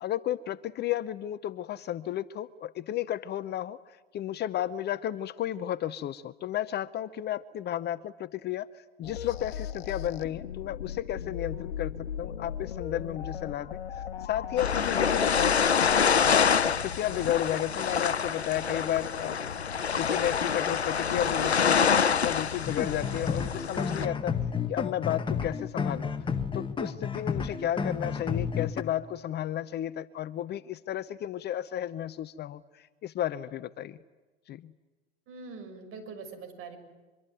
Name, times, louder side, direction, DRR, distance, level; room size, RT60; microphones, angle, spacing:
voice 1, 0.0-3.8 4.1-15.6 16.0-19.4 19.9-24.4 24.7-26.1 26.5-34.0 34.5-34.7, left 12 dB, 30° left, 16 dB, 0.8 m, -33 dB
sound 1, 9.0-16.4, left 9 dB, 75° left, 1.4 m, -37 dB
sound 2, 14.6-24.1, left 6 dB, 90° left, 0.8 m, -26 dB
sound 3, 22.6-28.8, left 6 dB, 15° left, 1.8 m, -31 dB
voice 2, 35.3-36.8, right 4 dB, 45° right, 7 dB, 6.5 m, -43 dB
24.5 x 24.5 x 9.4 m, 1.2 s
figure-of-eight pair, 85°, 31 cm